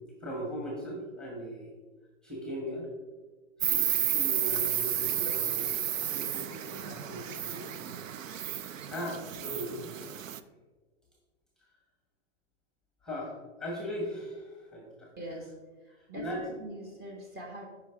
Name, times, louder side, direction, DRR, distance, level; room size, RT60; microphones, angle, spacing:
voice 1, 0.2-1.7 2.2-2.9 3.6-7.7 8.0-8.2 8.9-10.3 13.0-15.1 15.9-16.4, equal, ahead, -1 dB, 1.1 m, -39 dB
Insect, 3.6-10.4, right 10 dB, 85° right, 0.6 m, -32 dB
voice 2, 15.2-17.7, right 1 dB, 25° right, 0 dB, 1.5 m, -43 dB
8.9 x 5.2 x 3.5 m, 1.3 s
hypercardioid pair, 130°, 38 cm